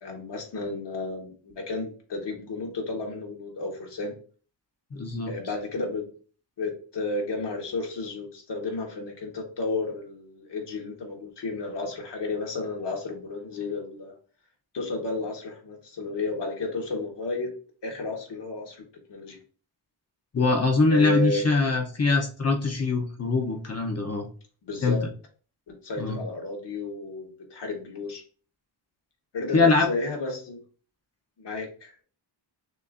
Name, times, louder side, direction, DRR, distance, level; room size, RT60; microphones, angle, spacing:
voice 1, 0.0-4.1 5.3-6.1 6.6-14.1 14.7-17.5 17.8-18.8 19.1-19.4 20.9-21.5 24.6-25.0 25.7-28.2 29.3-30.6 31.4-32.0, left 2 dB, 65° left, 1 dB, 1.4 m, -32 dB
voice 2, 4.9-5.3 20.3-24.3 24.8-25.0 26.0-26.2 29.5-29.9, left 3 dB, 35° left, 2 dB, 0.7 m, -23 dB
6.6 x 2.5 x 2.5 m, 0.41 s
wide cardioid pair, 90°, 45 cm